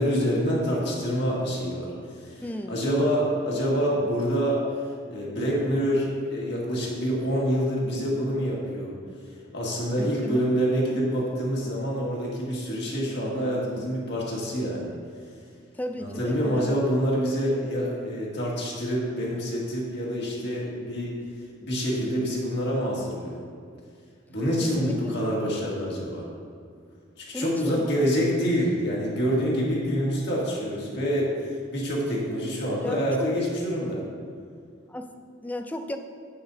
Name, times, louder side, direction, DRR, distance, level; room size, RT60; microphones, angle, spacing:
voice 1, 0.0-4.6 5.1-8.9 9.5-14.9 16.0-21.1 21.6-23.4 24.3-26.3 27.2-34.0, equal, 55° left, -4 dB, 1.9 m, -26 dB
voice 2, 2.4-2.8 10.0-10.5 15.7-16.8 24.6-25.1 27.3-28.1 32.8-33.3 34.9-36.0, left 1 dB, 10° left, 6 dB, 0.4 m, -35 dB
10.0 x 8.7 x 2.7 m, 2.2 s
head